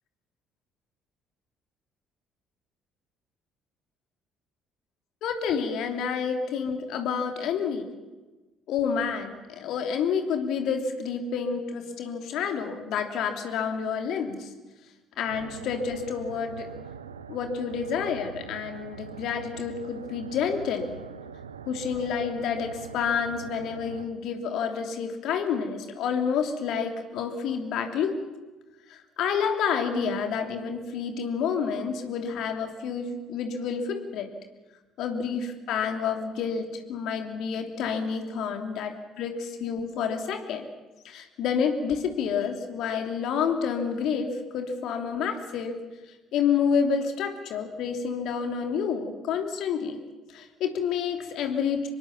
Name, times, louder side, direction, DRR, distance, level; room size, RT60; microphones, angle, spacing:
voice 1, 5.2-7.9 8.7-14.5 15.2-16.7 17.3-21.0 21.7-28.2 28.9-34.3 35.0-40.7 41.0-45.8 46.3-50.0 50.3-51.9, left 6 dB, 60° left, 5 dB, 3.1 m, -29 dB
sound 1, 15.3-24.1, right 6 dB, 85° right, 0.8 m, -43 dB
25.5 x 23.0 x 7.2 m, 1.2 s
figure-of-eight pair, 50°, 0 cm